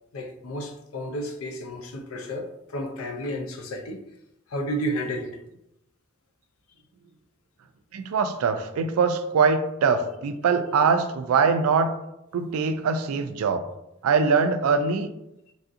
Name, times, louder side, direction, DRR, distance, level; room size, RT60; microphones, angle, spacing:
voice 1, 0.1-4.0 4.5-5.4, equal, 85° left, 0.5 m, -32 dB
voice 2, 7.9-11.9 12.3-13.7 14.0-15.1, right 5 dB, 90° right, 0.3 m, -22 dB
3.3 x 2.6 x 2.4 m
head